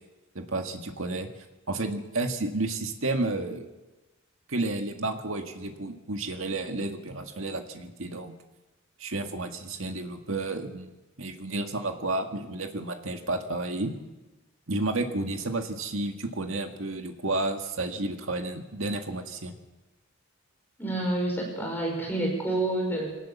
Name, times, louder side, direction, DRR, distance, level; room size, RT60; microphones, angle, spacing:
voice 1, 0.4-1.3 1.7-3.7 4.5-8.3 9.0-10.9 11.2-13.9 14.7-19.6, right 2 dB, 70° right, 5 dB, 2.0 m, -31 dB
voice 2, 20.8-23.1, right 1 dB, 10° left, 0 dB, 5.6 m, -28 dB
22.5 x 18.5 x 7.3 m, 1.1 s
head